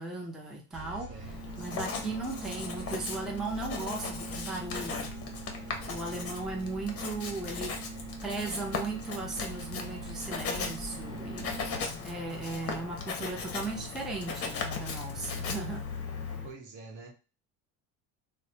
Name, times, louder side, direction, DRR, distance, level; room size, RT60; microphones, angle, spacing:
voice 1, 0.0-5.1 5.8-11.8 12.0-15.9, right 3 dB, ahead, 0.5 m, -37 dB
sound 1, 0.7-12.1, right 3 dB, 35° right, 1.2 m, -43 dB
voice 2, 1.1-1.6 5.6-6.2 16.4-17.1, right 3 dB, 55° right, 0.9 m, -48 dB
Writing, 1.2-16.5, left 5 dB, 40° left, 0.7 m, -38 dB
3.0 x 2.0 x 2.7 m
cardioid pair, 105°, 38 cm